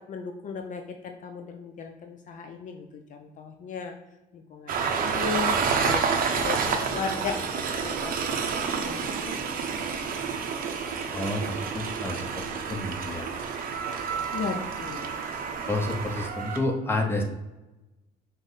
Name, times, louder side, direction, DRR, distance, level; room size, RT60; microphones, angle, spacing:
voice 1, 0.0-4.0 4.3-8.1 8.6-9.6 14.3-15.2, left 5 dB, 50° left, 5 dB, 0.4 m, -36 dB
Train, 4.7-16.6, right 5 dB, 55° right, 0.6 m, -29 dB
voice 2, 11.1-12.4 12.7-13.3 15.7-17.2, left 2 dB, 15° left, 2 dB, 0.7 m, -29 dB
5.1 x 2.0 x 3.9 m, 1.0 s
cardioid pair, 110°, 17 cm